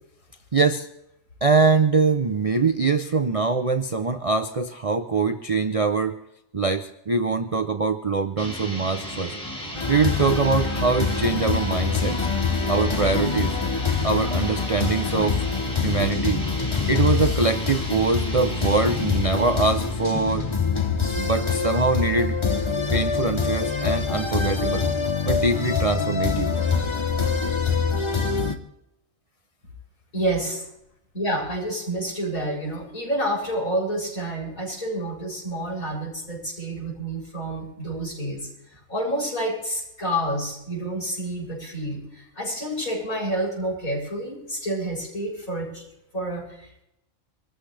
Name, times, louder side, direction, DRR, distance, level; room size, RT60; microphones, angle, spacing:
voice 1, 0.5-0.9 1.4-6.2 6.5-9.3 9.6-12.2 12.7-13.6 14.0-15.4 15.8-16.4 16.9-20.5 21.2-22.3 22.9-24.9 25.2-26.5, right 4 dB, 45° right, 8 dB, 0.4 m, -23 dB
sound 1, 8.4-20.9, equal, 5° left, 2.4 m, -35 dB
sound 2, 9.7-28.6, left 5 dB, 25° left, 0.7 m, -25 dB
voice 2, 30.1-30.7 31.1-45.8 46.1-46.8, right 1 dB, 80° left, -3 dB, 7.7 m, -29 dB
24.5 x 14.0 x 3.3 m, 0.83 s
omnidirectional pair, 1.5 m